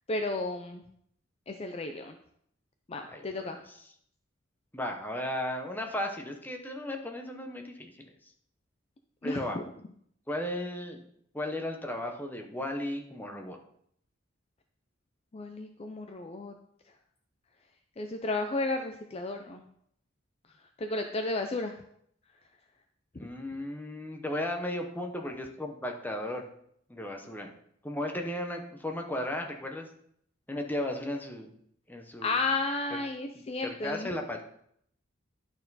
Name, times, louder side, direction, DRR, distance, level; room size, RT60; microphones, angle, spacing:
voice 1, 0.1-0.8 1.5-2.1 2.9-3.6 9.2-9.6 15.3-16.5 18.0-19.6 20.8-21.8 23.2-23.3 32.2-34.1, left 2 dB, 30° left, 5 dB, 0.5 m, -33 dB
voice 2, 3.1-3.8 4.7-7.9 9.2-9.6 10.3-11.0 11.3-13.6 23.2-26.5 26.9-27.5 27.8-29.9 30.5-31.5 31.9-32.4 32.9-33.0 33.6-34.4, left 1 dB, 10° left, 3 dB, 0.9 m, -35 dB
11.0 x 4.4 x 4.1 m, 0.69 s
head